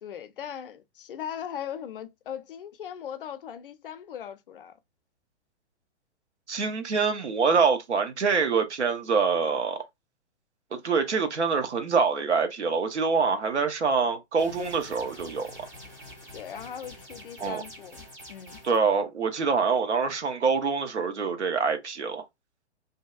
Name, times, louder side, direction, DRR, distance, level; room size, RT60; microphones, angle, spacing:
voice 1, 0.0-4.8 16.3-18.6, left 9 dB, 50° left, 0.5 m, -39 dB
voice 2, 6.5-9.8 10.8-15.5 17.4-17.6 18.6-22.2, right 5 dB, 80° right, 0.7 m, -25 dB
sound 1, 14.4-18.8, left 1 dB, 10° right, 0.4 m, -46 dB
2.6 x 2.2 x 2.4 m
figure-of-eight pair, 110°, 34 cm